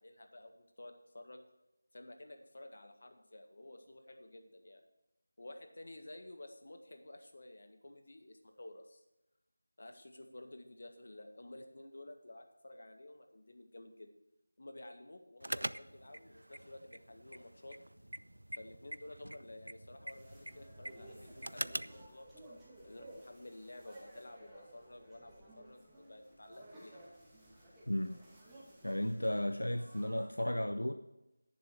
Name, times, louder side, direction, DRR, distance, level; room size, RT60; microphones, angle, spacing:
voice 1, 0.0-1.4 1.9-4.8 5.4-9.0 9.8-14.1 14.6-17.8 18.6-22.3 22.8-27.1, left 1 dB, 55° left, 6 dB, 1.8 m, -52 dB
sound 1, 15.4-22.1, right 1 dB, 85° right, 0.4 m, -45 dB
sound 2, 20.1-30.3, right 1 dB, 5° right, 2.4 m, -57 dB
voice 2, 27.9-28.2 28.8-30.9, left 1 dB, 85° left, 8 dB, 0.8 m, -34 dB
10.5 x 10.5 x 4.6 m, 0.93 s
figure-of-eight pair, 170°, 0 cm